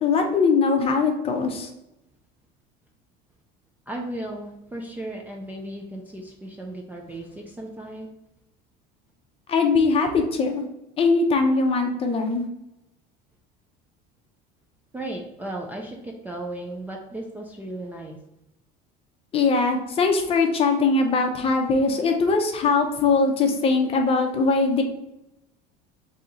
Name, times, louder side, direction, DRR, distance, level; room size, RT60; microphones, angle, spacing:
voice 1, 0.0-1.7 9.5-10.6 11.0-12.4 19.3-24.8, left 4 dB, 30° left, 4 dB, 0.6 m, -21 dB
voice 2, 3.9-8.1 14.9-18.2, right 1 dB, 10° right, 0 dB, 0.4 m, -35 dB
3.6 x 2.8 x 3.9 m, 0.91 s
cardioid pair, 145°, 20 cm